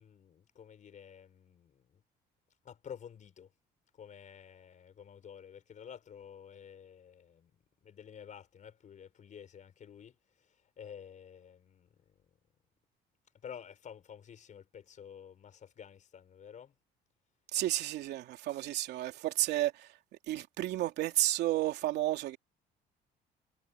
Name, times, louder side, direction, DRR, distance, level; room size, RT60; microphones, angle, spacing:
voice 1, 0.0-2.0 2.6-3.5 4.0-7.5 7.8-10.2 10.8-12.0 13.4-16.7, left 8 dB, 50° left, 5.0 m, -50 dB
voice 2, 17.5-19.9 20.3-22.4, right 14 dB, 80° right, 3.1 m, -32 dB
cardioid pair, 110°, 17 cm